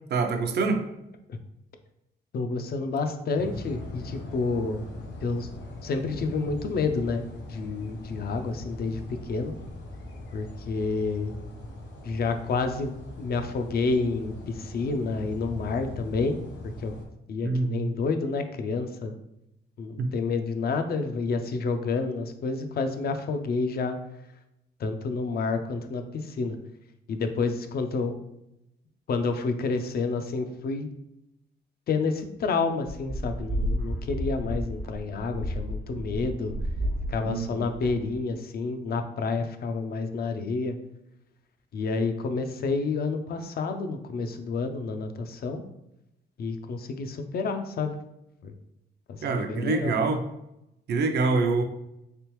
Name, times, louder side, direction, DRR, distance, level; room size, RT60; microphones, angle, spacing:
voice 1, 0.1-0.8 17.4-17.9 20.0-20.1 37.2-37.7 49.2-50.2 50.9-51.6, right 4 dB, 65° right, 6 dB, 0.5 m, -25 dB
voice 2, 2.3-4.8 5.2-5.5 5.8-7.2 7.5-9.5 10.3-11.4 12.0-16.4 16.8-16.9 17.3-19.2 19.8-24.0 24.8-26.6 27.1-28.2 29.1-30.9 31.9-36.5 37.1-40.8 41.7-45.6 46.4-48.0 48.4-48.5 49.1-50.0, left 4 dB, 55° left, 7 dB, 0.4 m, -29 dB
sound 1, 3.4-17.1, left 2 dB, 75° left, 0.8 m, -41 dB
sound 2, 32.9-38.3, equal, 80° right, 0.9 m, -32 dB
3.4 x 3.3 x 3.0 m, 0.86 s
wide cardioid pair, 135°, 19 cm